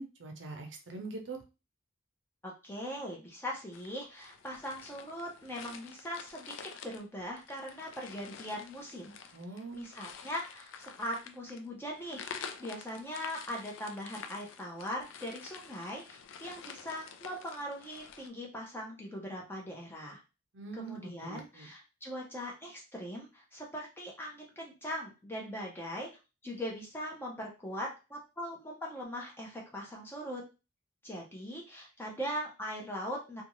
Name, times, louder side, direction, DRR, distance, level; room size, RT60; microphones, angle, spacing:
voice 1, 0.0-1.4 9.3-9.9 20.5-21.7, right 3 dB, 75° right, 4 dB, 0.6 m, -43 dB
voice 2, 2.4-9.3 9.7-20.2 20.7-26.1 26.4-30.4 31.0-33.4, equal, 10° left, -2 dB, 0.7 m, -40 dB
sound 1, 3.7-18.3, left 6 dB, 90° left, 0.4 m, -49 dB
2.6 x 2.3 x 3.0 m, 0.30 s
head